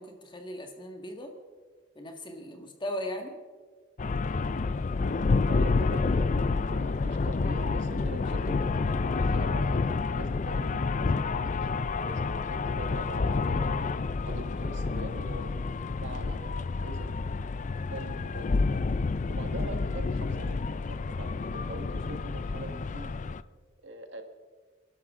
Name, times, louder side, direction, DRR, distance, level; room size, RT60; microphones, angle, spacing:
voice 1, 0.0-1.3 2.0-3.4, left 1 dB, 25° left, 3 dB, 1.8 m, -38 dB
sound 1, 4.0-23.4, left 4 dB, 40° left, 0.4 m, -29 dB
voice 2, 5.5-13.8 14.3-17.1 17.9-18.8 19.3-23.1 23.8-24.2, right 1 dB, 70° right, 6 dB, 1.6 m, -43 dB
28.0 x 12.0 x 3.7 m, 1.5 s
head